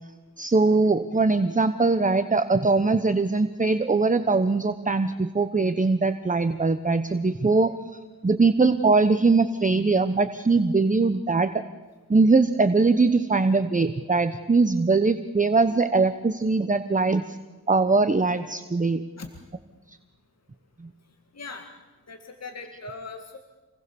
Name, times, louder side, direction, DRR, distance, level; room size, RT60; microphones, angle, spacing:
voice 1, 0.4-7.8 8.2-11.6 12.1-17.4 17.7-19.0, right 3 dB, 20° right, 10 dB, 1.0 m, -21 dB
voice 2, 21.3-21.7 22.1-23.4, left 3 dB, 40° left, 5 dB, 2.1 m, -39 dB
28.0 x 20.5 x 7.0 m, 1.3 s
wide cardioid pair, 85°, 38 cm